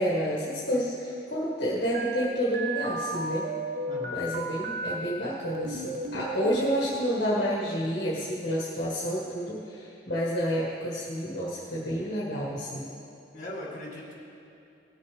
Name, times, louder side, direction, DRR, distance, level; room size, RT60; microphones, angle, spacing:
voice 1, 0.0-3.5 4.0-12.8, equal, 65° left, -6 dB, 1.7 m, -29 dB
sound 1, 1.9-4.9 5.4-7.0, right 1 dB, 55° right, 0.7 m, -34 dB
voice 2, 3.9-4.2 13.3-14.2, left 1 dB, 45° left, -3 dB, 2.2 m, -39 dB
18.5 x 6.7 x 3.5 m, 2.7 s
head